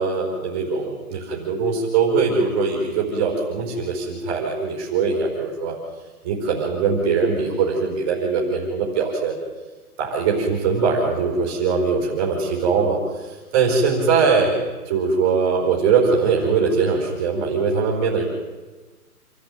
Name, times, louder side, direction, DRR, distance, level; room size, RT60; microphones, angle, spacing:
voice 1, 0.0-5.8 6.2-9.4 10.0-13.0 13.5-18.2, right 5 dB, 15° right, -2 dB, 4.2 m, -21 dB
27.5 x 14.0 x 7.9 m, 1.2 s
hypercardioid pair, 175°, 46 cm